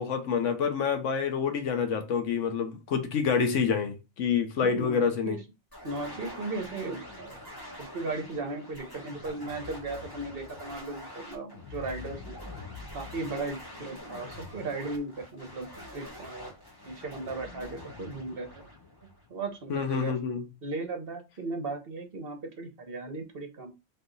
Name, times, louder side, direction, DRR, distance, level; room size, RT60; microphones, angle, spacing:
voice 1, 0.0-5.4 19.7-20.4, left 6 dB, 90° left, 1.2 m, -27 dB
voice 2, 4.6-5.4 5.8-7.4 7.9-12.4 12.9-16.5 16.8-18.7 19.3-20.1 20.6-23.7, right 3 dB, 55° right, 1.1 m, -36 dB
sound 1, 5.7-19.6, left 1 dB, 20° left, 1.5 m, -44 dB
3.7 x 3.4 x 3.9 m
omnidirectional pair, 1.2 m